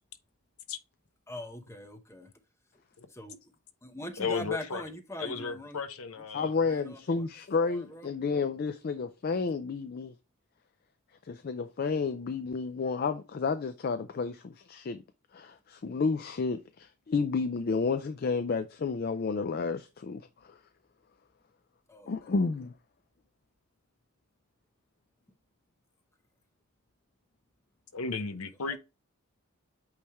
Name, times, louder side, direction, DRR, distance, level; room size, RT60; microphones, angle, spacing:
voice 1, 1.3-2.3 3.1-3.4 3.8-5.8 6.3-7.3 7.6-8.1 21.9-22.1 28.7-28.8, left 1 dB, 15° left, 0.7 m, -42 dB
voice 2, 4.2-4.8 5.2-6.5 27.9-28.8, left 5 dB, 90° left, 0.8 m, -34 dB
voice 3, 6.3-10.1 11.2-15.0 15.3-20.6 22.1-22.7, left 4 dB, 45° left, 0.4 m, -31 dB
8.4 x 3.3 x 3.4 m
head